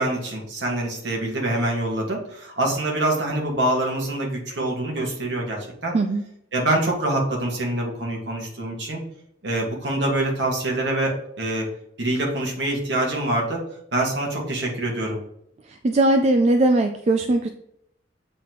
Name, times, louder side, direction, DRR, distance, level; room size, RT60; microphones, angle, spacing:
voice 1, 0.0-6.0 6.5-9.0 9.4-11.7 12.0-13.6 13.9-15.2, right 1 dB, 65° right, -1 dB, 1.8 m, -25 dB
voice 2, 15.7-17.5, right 2 dB, 35° right, 6 dB, 0.4 m, -19 dB
7.5 x 4.2 x 3.0 m, 0.74 s
head